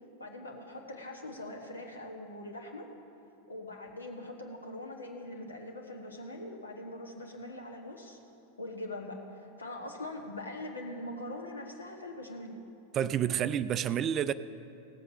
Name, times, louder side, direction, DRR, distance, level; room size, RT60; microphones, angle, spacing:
voice 1, 0.2-2.8 3.5-8.2 8.6-12.6, left 1 dB, 75° left, 2 dB, 1.4 m, -42 dB
voice 2, 12.9-14.3, right 9 dB, 30° right, 15 dB, 0.3 m, -29 dB
17.5 x 7.8 x 5.3 m, 2.7 s
figure-of-eight pair, 90°, 0 cm